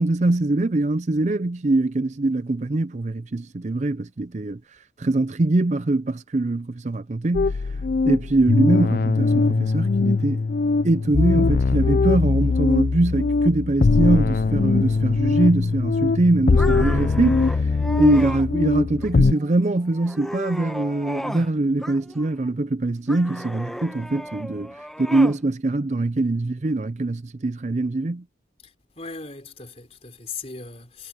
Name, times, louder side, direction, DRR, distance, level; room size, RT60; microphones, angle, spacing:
voice 1, 0.0-7.8 8.0-10.4 10.8-28.2, right 2 dB, 40° right, 0.5 m, -23 dB
sound 1, 7.3-19.3, left 3 dB, 50° left, 0.4 m, -21 dB
sound 2, 16.6-18.5 19.0-19.5 19.9-21.5 21.8-22.5 23.1-25.4, equal, ahead, 1.3 m, -35 dB
voice 2, 18.1-18.4 28.6-31.1, left 4 dB, 35° left, 3.9 m, -39 dB
head